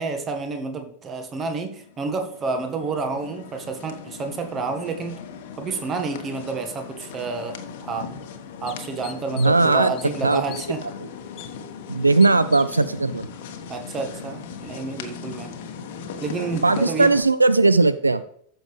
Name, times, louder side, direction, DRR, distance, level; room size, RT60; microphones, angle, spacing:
voice 1, 0.0-5.2 5.6-8.1 8.6-10.8 13.7-15.5 16.2-17.1, right 4 dB, 25° right, 6 dB, 1.6 m, -29 dB
sound 1, 1.5-17.2, left 6 dB, 50° left, 1.3 m, -38 dB
sound 2, 7.6-7.7 8.2-8.3 8.7-9.7 10.0-10.7 11.4-11.5 12.2-12.9, left 13 dB, 35° left, 0.8 m, -40 dB
voice 2, 9.4-9.9 10.2-10.4 11.9-13.3 16.6-18.2, right 3 dB, 80° right, 14 dB, 0.3 m, -18 dB
14.0 x 6.9 x 3.3 m, 0.66 s
figure-of-eight pair, 90°, 0 cm